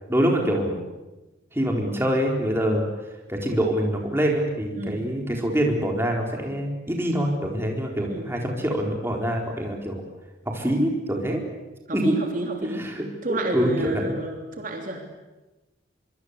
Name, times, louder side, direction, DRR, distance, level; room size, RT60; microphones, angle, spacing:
voice 1, 0.1-0.8 1.5-2.8 3.3-10.0 10.5-11.4 11.9-12.2 12.8-14.1, equal, 15° right, 1 dB, 4.3 m, -25 dB
voice 2, 4.8-5.1 8.0-8.3 11.9-12.9 13.2-15.0, right 1 dB, 45° right, 2 dB, 3.3 m, -30 dB
25.0 x 24.5 x 8.3 m, 1.1 s
head